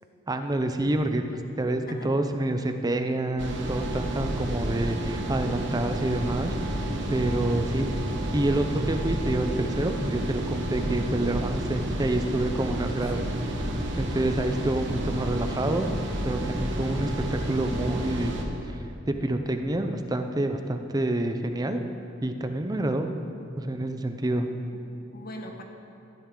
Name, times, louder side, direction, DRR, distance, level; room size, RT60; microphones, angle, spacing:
voice 1, 0.3-1.2 1.6-6.8 7.1-7.9 8.3-13.3 14.0-15.9 16.2-18.3 18.6-21.8 22.2-23.1 23.6-24.5, right 1 dB, 20° right, 7 dB, 0.6 m, -28 dB
voice 2, 1.9-2.2 4.2-4.7 13.0-13.3 24.4-25.6, equal, 50° left, 3 dB, 1.2 m, -44 dB
sound 1, 3.4-18.4, right 1 dB, 70° right, 1.2 m, -30 dB
14.5 x 10.5 x 3.8 m, 2.6 s
head